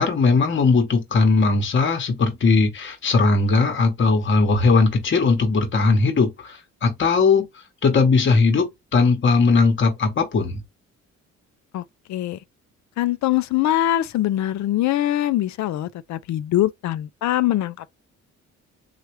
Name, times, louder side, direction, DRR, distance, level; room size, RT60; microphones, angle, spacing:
voice 1, 0.0-7.4 7.8-10.6, left 4 dB, 40° left, 1.1 m, -19 dB
voice 2, 12.1-12.4 13.0-17.9, left 13 dB, 70° left, 0.5 m, -23 dB
3.2 x 2.4 x 3.0 m
cardioid pair, 90°, 30 cm